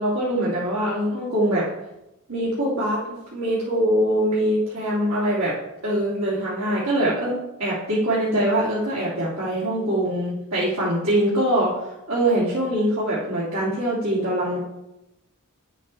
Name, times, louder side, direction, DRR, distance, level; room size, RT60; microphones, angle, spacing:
voice 1, 0.0-1.7 2.3-5.5 5.8-14.6, right 1 dB, 70° right, -8 dB, 2.9 m, -23 dB
9.8 x 8.1 x 4.2 m, 0.92 s
head